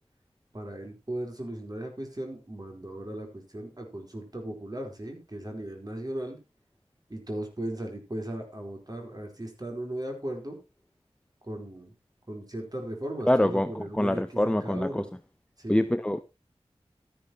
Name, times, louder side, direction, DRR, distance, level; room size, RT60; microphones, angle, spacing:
voice 1, 0.5-6.4 7.1-10.6 11.4-11.9 12.3-15.1 15.6-15.9, right 1 dB, 35° right, 4.3 m, -37 dB
voice 2, 13.3-15.0 15.7-16.2, left 1 dB, 10° left, 0.6 m, -25 dB
13.0 x 11.0 x 3.0 m
wide cardioid pair, 45°, 11 cm